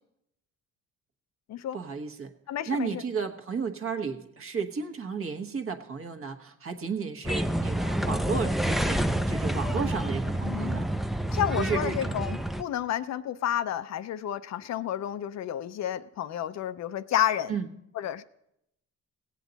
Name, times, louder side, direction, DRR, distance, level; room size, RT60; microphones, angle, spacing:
voice 1, 1.7-2.3 2.7-10.9 11.5-12.2 17.5-17.7, right 5 dB, 45° right, 6 dB, 1.2 m, -33 dB
voice 2, 2.5-3.0 10.4-10.8 11.3-17.5 18.0-18.2, left 10 dB, 60° left, 13 dB, 0.5 m, -30 dB
sound 1, 7.2-12.6, right 1 dB, ahead, 0.4 m, -28 dB
17.5 x 8.3 x 4.0 m, 0.79 s
cardioid pair, 90°, 30 cm